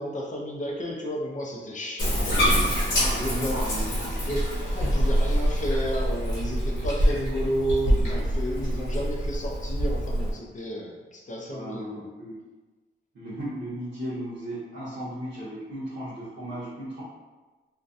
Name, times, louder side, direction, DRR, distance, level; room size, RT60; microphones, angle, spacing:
voice 1, 0.0-3.6 4.3-4.4 4.7-11.9, equal, 40° left, -1 dB, 0.5 m, -32 dB
Bathtub (filling or washing), 2.0-10.3, equal, 65° left, 1.0 m, -25 dB
voice 2, 2.9-4.2 11.5-12.4 13.1-17.0, equal, 65° right, -12 dB, 0.9 m, -35 dB
2.4 x 2.2 x 2.6 m, 1.2 s
wide cardioid pair, 95°, 21 cm